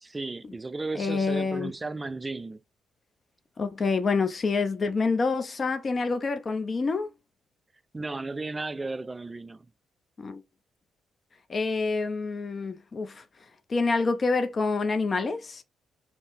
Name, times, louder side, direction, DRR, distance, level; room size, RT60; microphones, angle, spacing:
voice 1, 0.0-2.6 7.9-9.7, right 3 dB, 25° right, 0.3 m, -34 dB
voice 2, 1.0-1.7 3.6-7.1 10.2-10.4 11.5-13.2 13.7-15.6, left 4 dB, 40° left, 0.5 m, -27 dB
4.0 x 2.1 x 3.5 m
supercardioid pair, 65°, 0 cm